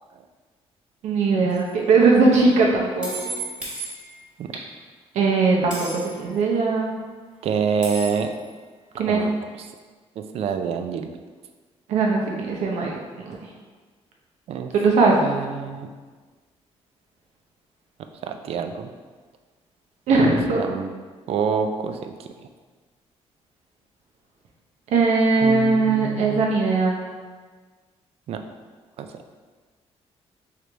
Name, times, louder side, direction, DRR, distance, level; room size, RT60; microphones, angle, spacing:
voice 1, 1.0-3.1 5.1-6.9 9.0-9.2 11.9-13.0 13.3-13.4 14.7-15.2 20.1-20.6 24.9-27.0, right 3 dB, 90° right, -1 dB, 0.8 m, -19 dB
sound 1, 1.5-1.7 3.0-4.4 5.7-6.3 7.8-8.5, right 2 dB, 5° right, 1.1 m, -34 dB
voice 2, 7.4-8.3 9.0-9.7 10.2-11.1 14.5-14.7 15.2-15.9 18.2-18.9 20.5-20.9 21.3-22.3 25.4-26.5 28.3-28.4 29.0-29.2, right 6 dB, 60° right, 7 dB, 0.3 m, -27 dB
3.3 x 3.2 x 3.8 m, 1.4 s
cardioid pair, 145°, 11 cm